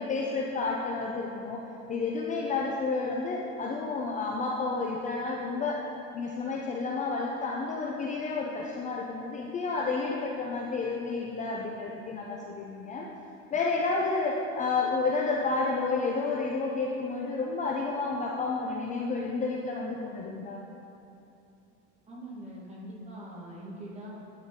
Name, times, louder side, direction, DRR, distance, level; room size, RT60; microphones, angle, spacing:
voice 1, 0.0-5.8 6.1-13.1 13.5-20.6, left 3 dB, 25° left, -2 dB, 0.4 m, -30 dB
voice 2, 22.1-24.1, right 1 dB, 25° right, -5 dB, 1.5 m, -43 dB
9.5 x 3.8 x 3.6 m, 2.8 s
cardioid pair, 135°, 29 cm